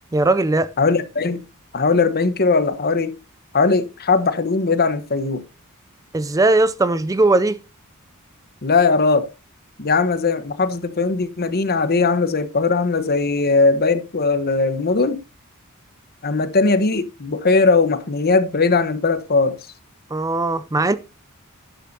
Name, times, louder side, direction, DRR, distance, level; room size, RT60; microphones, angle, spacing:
voice 1, 0.1-0.7 6.1-7.6 20.1-21.0, right 2 dB, 15° right, 0.4 m, -18 dB
voice 2, 0.8-1.4 1.7-3.1 3.5-5.4 8.6-9.3 9.8-15.2 16.2-19.6, left 4 dB, 45° left, 1.1 m, -19 dB
12.0 x 10.0 x 2.7 m
head